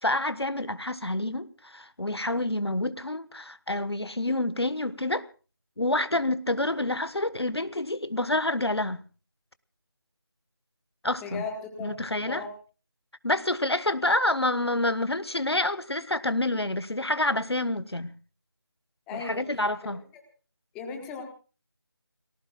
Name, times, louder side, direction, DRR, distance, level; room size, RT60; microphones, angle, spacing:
voice 1, 0.0-5.3 5.8-9.0 11.0-11.4 11.8-12.4 13.2-18.1 19.1-20.0, left 1 dB, 85° left, 1.3 m, -28 dB
voice 2, 11.2-11.9 12.3-12.5 19.1-19.4 20.7-21.2, left 5 dB, 5° left, 1.3 m, -36 dB
30.0 x 19.0 x 2.4 m
figure-of-eight pair, 165°, 13 cm